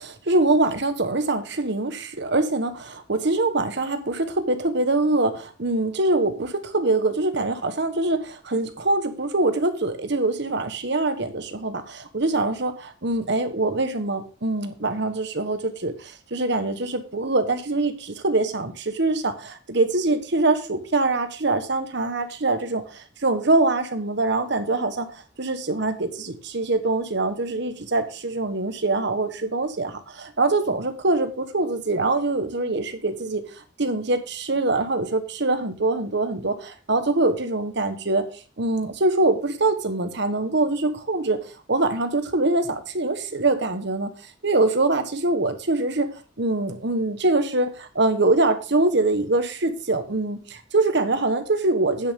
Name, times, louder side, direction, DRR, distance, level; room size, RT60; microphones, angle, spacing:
voice 1, 0.0-33.4 33.8-38.3 38.6-41.4 41.7-44.1 44.4-46.1 46.4-52.1, right 2 dB, 60° right, 9 dB, 1.3 m, -24 dB
9.6 x 8.7 x 3.7 m, 0.36 s
head